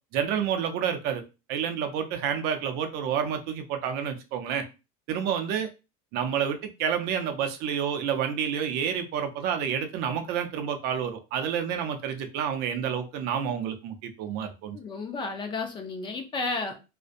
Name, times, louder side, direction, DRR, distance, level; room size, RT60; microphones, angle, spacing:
voice 1, 0.1-1.2 1.5-4.6 5.1-5.7 6.1-14.8, right 8 dB, 60° right, 6 dB, 0.5 m, -29 dB
voice 2, 14.7-16.8, left 3 dB, 25° left, 5 dB, 0.4 m, -32 dB
2.5 x 2.1 x 2.5 m, 0.29 s
cardioid pair, 140°, 19 cm